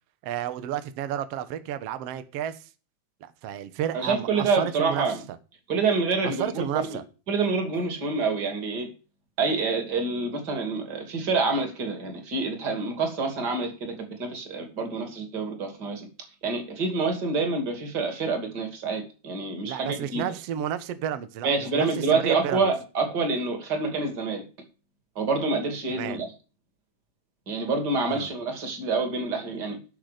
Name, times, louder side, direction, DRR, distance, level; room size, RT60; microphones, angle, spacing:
voice 1, 0.2-2.6 3.2-5.0 6.2-7.0 19.6-22.7 26.0-26.2 28.1-28.3, right 10 dB, 85° right, 1.3 m, -31 dB
voice 2, 3.9-5.2 5.7-6.9 7.3-8.9 9.4-16.1 16.4-20.2 21.4-24.4 25.2-26.3 27.5-29.8, right 4 dB, 30° right, 2.5 m, -27 dB
15.0 x 6.5 x 5.1 m
omnidirectional pair, 4.5 m